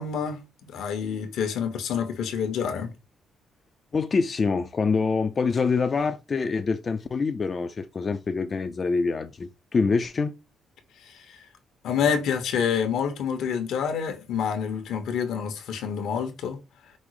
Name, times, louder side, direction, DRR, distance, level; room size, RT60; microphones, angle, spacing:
voice 1, 0.0-2.9 11.0-11.5 11.8-16.9, left 7 dB, 80° left, 1.0 m, -28 dB
voice 2, 3.9-10.3, left 4 dB, 40° left, 0.4 m, -25 dB
5.2 x 2.0 x 4.7 m
cardioid pair, 90°, 0 cm